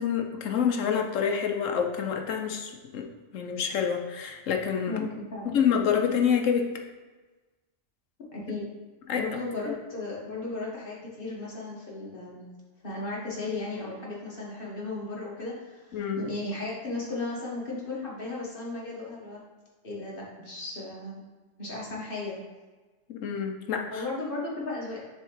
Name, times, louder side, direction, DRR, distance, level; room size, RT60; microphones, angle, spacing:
voice 1, 0.0-3.1 3.3-5.1 5.4-6.8 9.1-9.2 9.7-9.8 15.9-16.2 23.1-24.0, left 7 dB, 75° left, 3 dB, 1.1 m, -27 dB
voice 2, 4.9-5.5 8.3-8.6 9.2-12.5 12.8-19.4 19.8-21.2 21.6-22.4 23.9-25.0, left 2 dB, 45° left, -4 dB, 1.7 m, -35 dB
6.9 x 3.6 x 4.7 m, 1.3 s
omnidirectional pair, 1.3 m